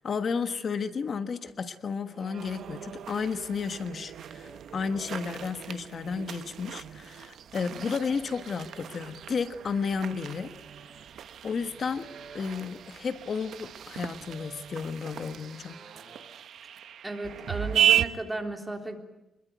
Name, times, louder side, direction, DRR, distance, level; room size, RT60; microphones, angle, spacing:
voice 1, 0.0-10.5 11.4-12.1 12.3-15.8, left 5 dB, 45° left, 9 dB, 1.4 m, -32 dB
sound 1, 2.1-3.4 3.9-5.7 6.0-7.3 7.6-9.1 9.5-11.2 11.4-13.1 13.7-16.2, right 5 dB, 50° right, 4.7 m, -52 dB
sound 2, 2.4-18.0, right 10 dB, 70° right, 1.1 m, -34 dB
voice 2, 17.0-19.0, right 1 dB, 10° right, 4 dB, 3.5 m, -34 dB
25.5 x 22.0 x 9.3 m, 0.90 s
cardioid pair, 135°, 0 cm